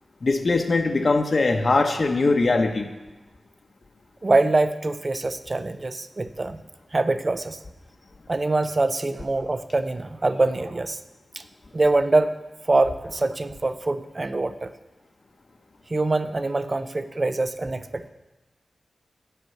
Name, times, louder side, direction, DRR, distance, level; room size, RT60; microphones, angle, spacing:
voice 1, 0.2-2.9, left 3 dB, 55° left, 3 dB, 0.8 m, -21 dB
voice 2, 4.2-6.6 6.9-7.6 8.3-11.0 11.4-11.5 11.7-12.4 12.7-14.7 15.9-18.1, right 2 dB, 40° right, 11 dB, 0.5 m, -24 dB
8.0 x 5.2 x 7.1 m, 1.1 s
wide cardioid pair, 70°, 0 cm